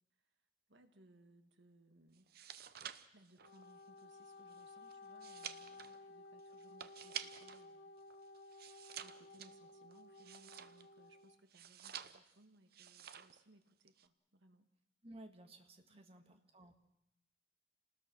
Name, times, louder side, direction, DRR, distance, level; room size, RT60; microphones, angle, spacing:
voice 1, 0.7-2.3 3.1-7.9 9.0-14.7 15.8-16.4, right 1 dB, 75° right, 7 dB, 1.8 m, -66 dB
sound 1, 2.2-7.7 8.0-11.0 11.5-12.4 12.7-13.4 13.7-14.1, right 9 dB, 55° right, 0.8 m, -50 dB
Wind instrument woodwind instrument, 3.3-11.4, left 3 dB, 85° left, 1.4 m, -56 dB
voice 2, 15.0-16.7, right 1 dB, 30° right, 5 dB, 1.9 m, -56 dB
28.5 x 19.5 x 6.2 m, 0.85 s
head